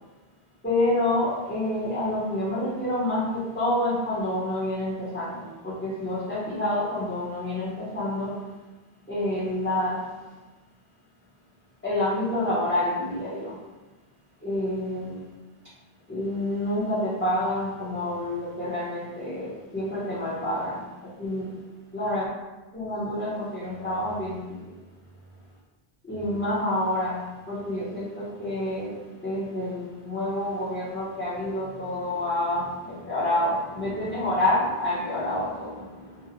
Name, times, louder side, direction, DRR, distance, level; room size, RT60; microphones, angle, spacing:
voice 1, 0.6-8.4 9.1-10.1 11.8-13.6 14.4-15.2 16.1-21.6 21.9-22.2 22.7-24.7 26.0-36.3, left 1 dB, 15° left, -11 dB, 0.5 m, -28 dB
2.6 x 2.0 x 2.7 m, 1.2 s
omnidirectional pair, 1.0 m